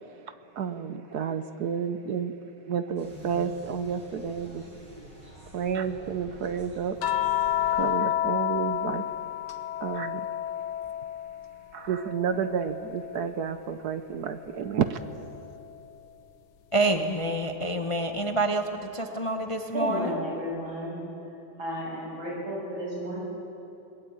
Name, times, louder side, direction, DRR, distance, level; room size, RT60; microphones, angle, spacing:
voice 1, 0.6-2.4 2.7-4.6 5.5-7.0 7.7-9.1 9.8-10.3 11.7-15.0, right 7 dB, 60° right, 10 dB, 1.2 m, -30 dB
sound 1, 3.0-7.9, equal, 15° right, 6.9 m, -47 dB
sound 2, 7.0-11.5 11.8-13.5 15.0-15.2, left 12 dB, 90° left, 1.9 m, -30 dB
voice 2, 16.7-20.1, right 2 dB, 25° left, 4 dB, 0.8 m, -27 dB
voice 3, 19.7-21.0 21.6-23.2, equal, 90° right, -3 dB, 7.7 m, -32 dB
21.5 x 21.0 x 8.8 m, 2.9 s
omnidirectional pair, 2.2 m